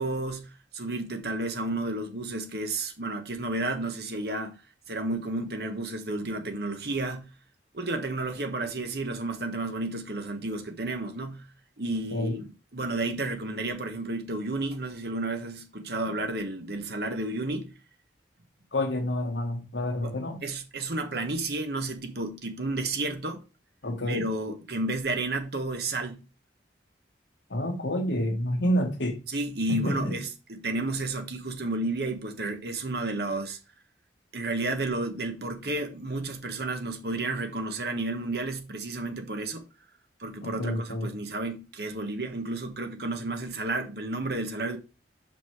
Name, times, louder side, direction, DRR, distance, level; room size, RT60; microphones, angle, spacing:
voice 1, 0.0-4.6 4.9-7.3 7.7-11.4 11.8-12.5 12.7-17.7 20.0-20.2 20.4-23.4 24.1-26.2 29.3-33.6 34.3-39.6 40.2-44.8, right 2 dB, 60° right, 1.2 m, -32 dB
voice 2, 18.7-20.4 23.8-24.3 27.5-29.2 29.7-30.2 40.4-41.1, equal, 80° left, 1.6 m, -28 dB
5.4 x 5.4 x 4.7 m
head